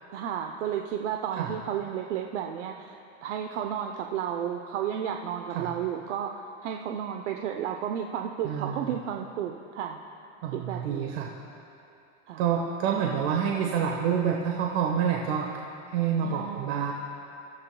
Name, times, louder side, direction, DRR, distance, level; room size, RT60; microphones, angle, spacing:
voice 1, 0.1-10.0 10.5-11.3 12.3-12.4 16.2-16.8, right 9 dB, 85° right, 3 dB, 0.9 m, -33 dB
voice 2, 8.4-8.9 10.4-11.3 12.4-15.5 15.9-16.9, right 7 dB, 65° right, 0 dB, 1.3 m, -27 dB
28.0 x 14.5 x 2.3 m, 2.7 s
supercardioid pair, 135°, 35 cm